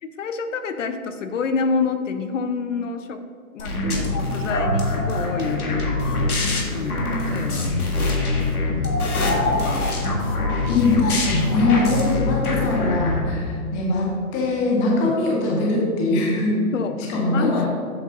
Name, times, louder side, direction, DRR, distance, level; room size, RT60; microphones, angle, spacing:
voice 1, 0.0-3.2 3.5-6.3 6.7-7.7 8.5-10.0 15.0-15.1 16.7-17.0 17.3-17.7, left 5 dB, 60° left, 9 dB, 0.7 m, -28 dB
sound 1, 3.6-13.2, left 2 dB, 75° left, 1.9 m, -23 dB
voice 2, 10.6-16.7 17.1-17.7, left 2 dB, 20° left, -2 dB, 1.0 m, -22 dB
7.8 x 6.3 x 3.8 m, 2.2 s
hypercardioid pair, 145°, 44 cm